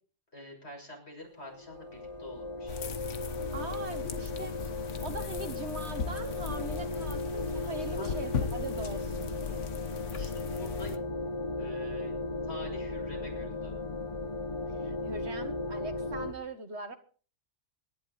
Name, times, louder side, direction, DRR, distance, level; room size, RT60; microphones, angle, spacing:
voice 1, 0.3-2.8 7.9-8.1 10.1-10.9 11.6-12.1 12.4-13.7, left 2 dB, 60° left, 0 dB, 6.8 m, -46 dB
sound 1, 1.5-16.3, left 2 dB, 30° left, 1.2 m, -36 dB
sound 2, 2.7-11.0, left 7 dB, 85° left, 1.6 m, -38 dB
voice 2, 3.5-9.7 14.7-17.0, right 3 dB, 65° right, 8 dB, 1.9 m, -41 dB
26.0 x 11.5 x 4.2 m, 0.41 s
omnidirectional pair, 1.2 m